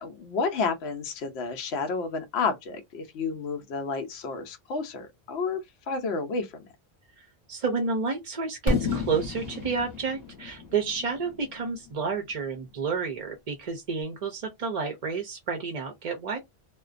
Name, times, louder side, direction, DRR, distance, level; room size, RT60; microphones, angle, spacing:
voice 1, 0.0-5.6 5.9-6.7, left 4 dB, 80° left, 0.9 m, -30 dB
voice 2, 7.2-16.4, right 5 dB, 45° right, 0.5 m, -30 dB
Fireworks, 8.7-12.5, left 3 dB, 30° left, 0.8 m, -32 dB
2.5 x 2.1 x 2.4 m
omnidirectional pair, 1.1 m